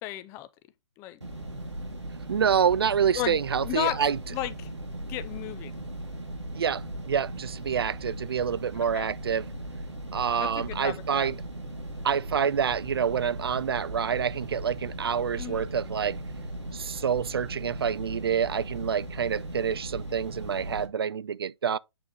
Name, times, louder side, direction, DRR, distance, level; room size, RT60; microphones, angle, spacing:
voice 1, 0.0-0.5 1.0-1.2 3.1-4.0 4.3-4.7 5.1-5.8 8.9-9.1 10.4-11.3 15.4-15.7, left 14 dB, 20° left, 0.5 m, -34 dB
sound 1, 1.2-20.9, right 1 dB, 85° right, 2.1 m, -38 dB
voice 2, 2.3-4.2 6.5-9.5 10.1-11.4 12.0-16.2 16.7-21.8, right 7 dB, 60° right, 0.4 m, -27 dB
8.6 x 3.6 x 4.0 m
figure-of-eight pair, 120°, 15 cm